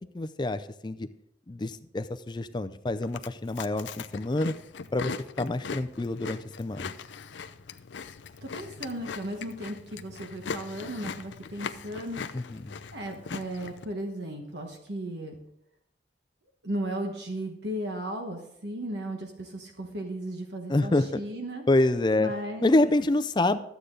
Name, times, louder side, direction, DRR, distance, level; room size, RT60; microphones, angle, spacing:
voice 1, 0.1-1.1 1.5-4.5 4.9-6.9 12.3-12.4 20.7-21.2 21.7-22.3 22.6-23.6, left 2 dB, 25° left, 12 dB, 0.4 m, -26 dB
Chewing mastication, 3.0-13.8, left 5 dB, 85° left, 0.5 m, -40 dB
voice 2, 8.4-12.2 12.9-15.4 16.6-21.6 22.2-22.9, right 1 dB, 70° right, 3 dB, 1.3 m, -35 dB
13.0 x 8.2 x 3.8 m, 0.79 s
head